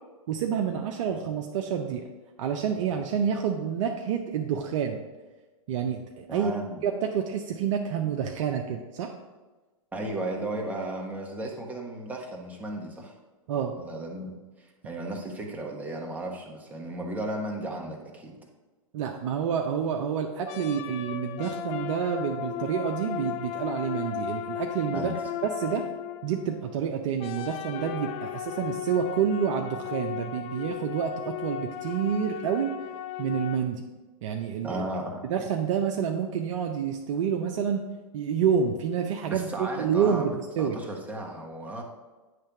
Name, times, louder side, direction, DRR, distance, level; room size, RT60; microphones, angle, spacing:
voice 1, 0.3-2.1 2.4-5.0 5.7-6.5 6.8-9.1 13.5-13.8 18.9-25.1 25.4-25.9 26.2-32.7 33.2-33.8 34.2-34.8 35.3-37.8 38.1-40.8, right 7 dB, 60° right, 3 dB, 0.7 m, -28 dB
voice 2, 6.3-6.8 9.9-13.1 13.8-14.3 14.6-18.4 24.9-25.2 34.6-35.2 39.3-41.8, right 1 dB, 10° right, -1 dB, 1.2 m, -35 dB
sound 1, 19.4-19.8 20.5-26.8 27.2-33.6, left 11 dB, 35° left, 0.4 m, -36 dB
8.8 x 3.3 x 5.8 m, 1.2 s
hypercardioid pair, 120°, 18 cm